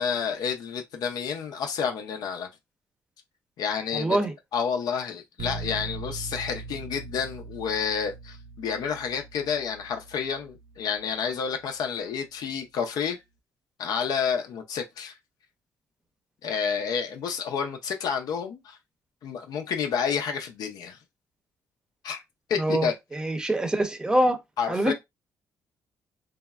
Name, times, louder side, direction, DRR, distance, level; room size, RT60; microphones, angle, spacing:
voice 1, 0.0-2.5 3.6-4.2 4.5-13.2 13.8-15.1 16.4-18.8 19.2-21.0 22.0-22.2 22.5-22.9 24.6-24.9, left 6 dB, 75° left, 0.4 m, -29 dB
voice 2, 3.9-4.3 22.6-24.4 24.7-24.9, right 1 dB, 10° right, 0.6 m, -25 dB
sound 1, 5.4-11.2, right 4 dB, 75° right, 0.5 m, -41 dB
3.3 x 2.0 x 2.3 m
cardioid pair, 95°, 7 cm